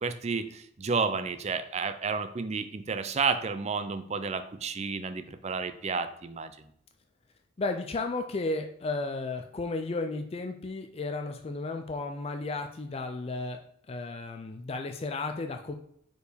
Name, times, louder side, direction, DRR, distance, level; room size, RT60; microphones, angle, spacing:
voice 1, 0.0-6.7, right 5 dB, 35° right, 10 dB, 0.4 m, -31 dB
voice 2, 7.6-13.6 13.9-15.7, left 3 dB, 30° left, 5 dB, 0.4 m, -33 dB
4.6 x 4.6 x 5.0 m, 0.69 s
head